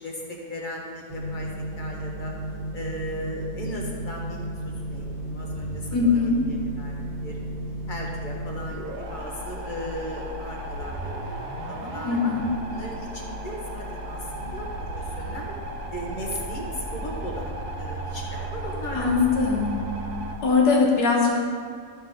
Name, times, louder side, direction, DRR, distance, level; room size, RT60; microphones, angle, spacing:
voice 1, 0.0-1.5 1.8-2.3 2.7-6.2 6.5-7.0 7.2-7.5 7.9-12.3 12.7-15.5 15.9-19.2, equal, 30° left, -2 dB, 1.3 m, -37 dB
sound 1, 1.1-20.4, right 1 dB, 65° right, 1.5 m, -34 dB
voice 2, 5.9-6.4 12.0-12.5 18.9-19.8 20.4-21.5, left 4 dB, 75° left, -2 dB, 1.9 m, -21 dB
13.0 x 5.3 x 3.9 m, 2.1 s
omnidirectional pair, 1.8 m